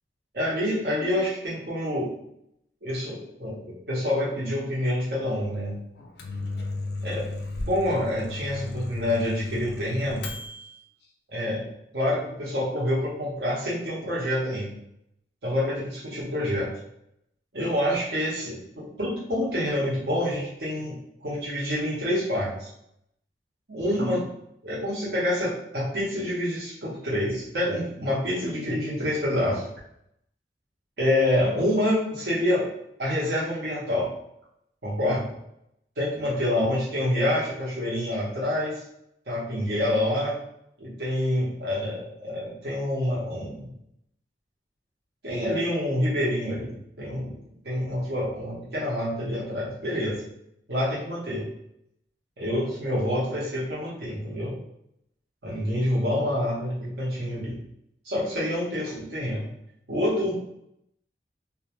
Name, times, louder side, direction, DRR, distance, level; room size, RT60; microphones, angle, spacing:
voice 1, 0.3-2.1 2.8-5.8 7.0-7.3 7.7-10.3 11.3-11.6 11.9-14.7 15.4-16.7 17.5-22.7 23.7-24.3 24.6-29.6 31.0-32.7 33.0-34.1 34.8-35.3 36.0-38.8 39.3-40.4 40.8-43.7 45.2-47.3 47.6-50.2 50.7-51.4 52.4-54.5 55.4-57.6 58.0-59.5 59.9-60.4, left 1 dB, 70° right, -7 dB, 0.8 m, -27 dB
Microwave oven, 6.0-10.8, left 2 dB, 75° left, 0.4 m, -34 dB
2.5 x 2.2 x 2.8 m, 0.76 s
head